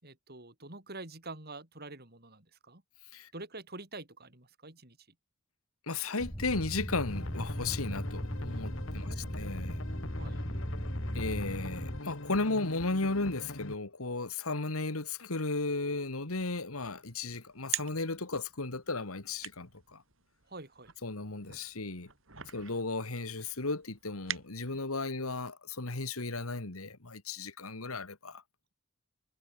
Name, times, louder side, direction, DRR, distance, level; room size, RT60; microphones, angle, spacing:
voice 1, 0.0-2.8 3.3-5.0 9.0-9.3 10.2-10.4 20.5-20.9, right 2 dB, 50° right, 6.2 m, -46 dB
voice 2, 5.9-9.8 11.1-20.0 21.0-22.1 22.5-28.4, left 3 dB, 90° left, 2.2 m, -35 dB
sound 1, 6.2-12.0, equal, 10° left, 1.8 m, -37 dB
sound 2, 7.1-13.7, left 2 dB, 65° left, 2.3 m, -43 dB
sound 3, 16.7-25.0, right 11 dB, 65° right, 5.2 m, -45 dB
head